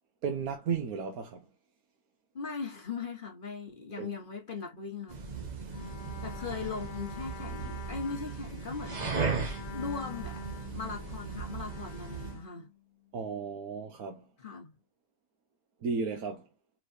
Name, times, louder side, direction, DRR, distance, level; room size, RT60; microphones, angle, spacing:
voice 1, 0.2-1.4 4.0-4.1 13.1-14.2 15.8-16.4, right 5 dB, 75° right, 1.4 m, -34 dB
voice 2, 2.3-5.2 6.2-10.4 10.7-12.7 14.4-14.7, left 5 dB, 35° left, 1.2 m, -39 dB
sound 1, 5.1-12.4, right 5 dB, 35° right, 0.9 m, -37 dB
Bowed string instrument, 5.7-13.1, left 9 dB, 65° left, 1.2 m, -48 dB
4.5 x 3.2 x 2.7 m
omnidirectional pair, 1.6 m